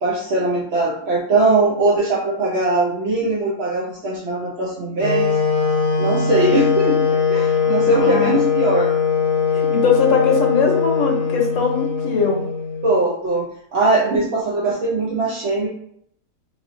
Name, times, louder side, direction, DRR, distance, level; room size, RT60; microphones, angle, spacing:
voice 1, 0.0-5.4 6.0-8.9 12.8-15.7, right 2 dB, 60° right, -4 dB, 0.7 m, -20 dB
Wind instrument woodwind instrument, 5.0-13.0, left 6 dB, 80° left, 1.3 m, -20 dB
voice 2, 7.6-8.3 9.5-12.4, left 5 dB, 60° left, 1 dB, 1.1 m, -21 dB
4.8 x 2.7 x 2.5 m, 0.69 s
omnidirectional pair, 1.7 m